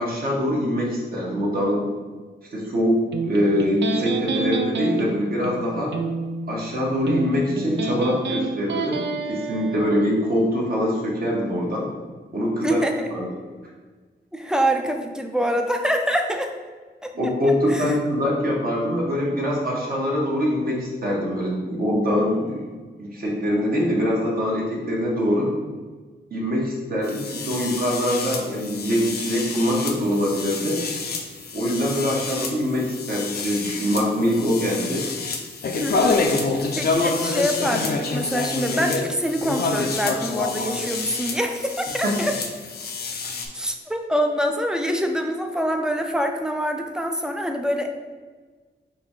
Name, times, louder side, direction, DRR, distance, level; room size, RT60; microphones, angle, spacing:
voice 1, 0.0-1.8 2.5-5.9 6.5-9.0 9.3-11.9 12.3-12.8 13.1-13.2 17.1-22.7 23.0-25.5 26.3-30.8 31.5-35.1 42.0-42.2 43.3-43.4, equal, 55° right, -4 dB, 1.1 m, -23 dB
Electric guitar, 3.1-10.1, right 4 dB, 90° right, 0.5 m, -29 dB
voice 2, 12.6-13.1 14.3-16.5 17.0-17.1 17.4-18.0 35.7-42.4 43.5-47.9, equal, 5° right, 4 dB, 0.4 m, -25 dB
sound 1, 27.0-43.5, left 4 dB, 65° left, 0.5 m, -28 dB
3.8 x 2.7 x 4.8 m, 1.4 s
wide cardioid pair, 125°, 18 cm